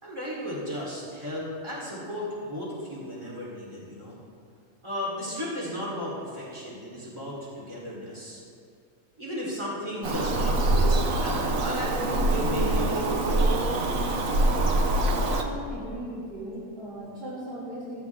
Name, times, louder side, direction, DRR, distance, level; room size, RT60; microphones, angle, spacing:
voice 1, 0.0-4.2 4.8-8.4 9.2-13.4, equal, 20° right, -7 dB, 4.1 m, -35 dB
Bird vocalization bird call bird song, 10.0-15.4, right 2 dB, 65° right, 1.4 m, -24 dB
voice 2, 15.3-18.0, equal, 40° right, -9 dB, 3.5 m, -37 dB
14.5 x 14.5 x 3.7 m, 2.3 s
omnidirectional pair, 1.6 m